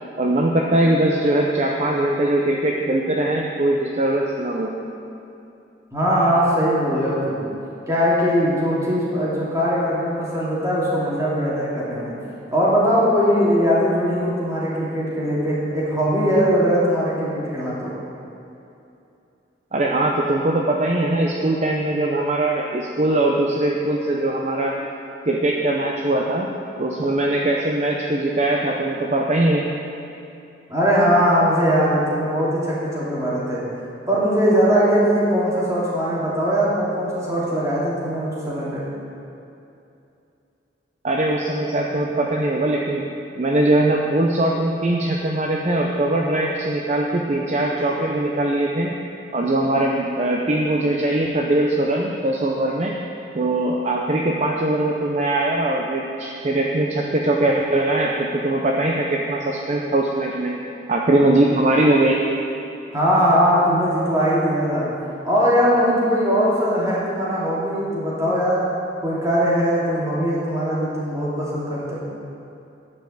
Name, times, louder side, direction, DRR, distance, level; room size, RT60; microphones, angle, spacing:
voice 1, 0.2-4.7 19.7-24.8 25.3-26.5 26.8-29.7 41.0-43.1 43.4-48.9 49.3-52.9 53.3-60.5 60.9-62.2, right 1 dB, 40° right, -1 dB, 0.6 m, -21 dB
voice 2, 5.9-7.4 7.9-12.1 12.5-17.9 30.7-33.6 34.1-38.8 62.9-64.9 65.2-68.6 69.0-72.0, equal, 20° right, -8 dB, 2.5 m, -20 dB
10.5 x 5.5 x 7.1 m, 2.7 s
head